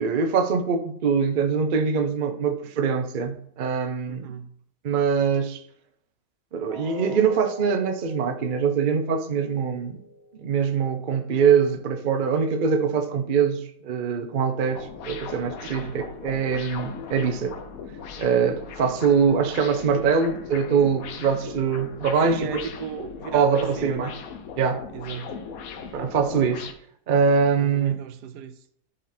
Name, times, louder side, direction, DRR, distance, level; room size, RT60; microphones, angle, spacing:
voice 1, 0.0-4.4 4.8-5.6 6.5-10.0 10.3-17.5 18.2-22.6 23.3-24.1 24.6-24.8 25.9-26.7 27.1-27.9, right 6 dB, 45° right, 0.7 m, -23 dB
voice 2, 4.1-4.6 15.6-16.0 18.8-19.3 22.2-24.1 24.9-25.4 27.6-28.6, right 8 dB, 80° right, 1.2 m, -37 dB
sound 1, 6.7-12.7 13.1-13.2 13.7-13.8, left 3 dB, 40° left, 1.8 m, -43 dB
sound 2, 14.7-26.7, left 6 dB, 65° left, 1.2 m, -38 dB
10.5 x 4.1 x 4.3 m
omnidirectional pair, 1.8 m